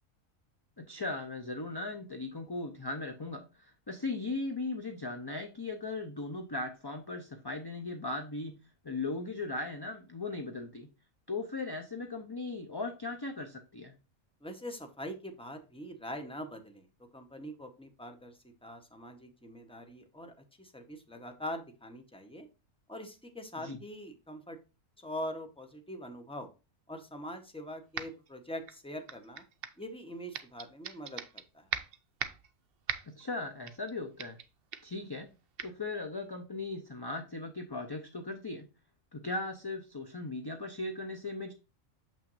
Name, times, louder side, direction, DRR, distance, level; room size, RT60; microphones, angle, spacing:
voice 1, 0.8-8.6 8.8-10.9 11.3-13.9 23.6-23.8 33.1-34.4 34.8-35.3 35.6-38.7 39.1-41.5, left 3 dB, 25° left, 5 dB, 0.5 m, -38 dB
voice 2, 14.4-16.9 17.1-22.5 22.9-24.6 25.0-26.5 26.9-29.4 29.8-31.7, equal, 5° left, 5 dB, 0.8 m, -43 dB
sound 1, 28.0-28.3 28.7-29.8 30.3-31.4 31.7-32.5 32.9-33.2 33.7-33.9 34.2-34.5 34.7-34.9 35.6-35.7, right 8 dB, 55° right, 0.7 m, -39 dB
7.2 x 5.9 x 2.6 m, 0.30 s
omnidirectional pair, 1.4 m